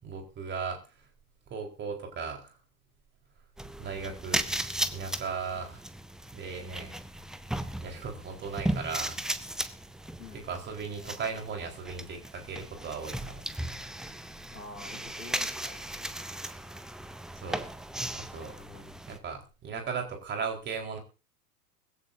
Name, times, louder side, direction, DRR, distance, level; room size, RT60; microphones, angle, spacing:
voice 1, 0.0-0.8 1.5-2.6 3.8-4.5 4.9-5.8 6.3-7.0 7.8-9.2 10.5-13.4 13.8-13.9 17.3-17.7 18.1-18.6 19.1-21.0, right 5 dB, 25° right, 3 dB, 4.4 m, -37 dB
sound 1, 3.6-19.2, right 1 dB, ahead, 0.6 m, -36 dB
voice 2, 10.2-10.5 14.5-15.8 18.5-19.0, left 3 dB, 80° left, 3 dB, 3.4 m, -47 dB
20.5 x 15.5 x 2.7 m, 0.33 s
figure-of-eight pair, 95°, 46 cm